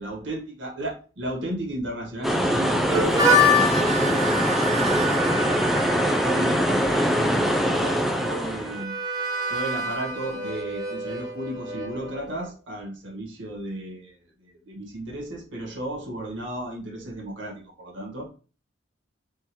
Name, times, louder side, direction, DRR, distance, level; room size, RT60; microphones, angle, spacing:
voice 1, 0.0-9.0 9.5-18.3, right 1 dB, 75° right, 0 dB, 1.7 m, -35 dB
sound 1, 2.2-8.8, equal, ahead, 0.5 m, -23 dB
Harmonica, 2.9-12.5, left 1 dB, 20° right, 1.1 m, -27 dB
4.3 x 3.7 x 3.1 m, 0.36 s
head